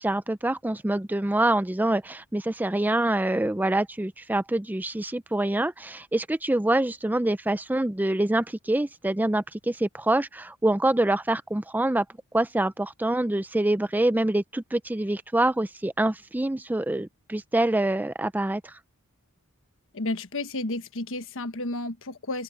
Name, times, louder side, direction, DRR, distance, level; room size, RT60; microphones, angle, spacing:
voice 1, 0.0-12.0 12.3-18.7, right 1 dB, 10° right, 0.4 m, -25 dB
voice 2, 19.9-22.4, left 2 dB, 60° left, 1.3 m, -32 dB
open air
head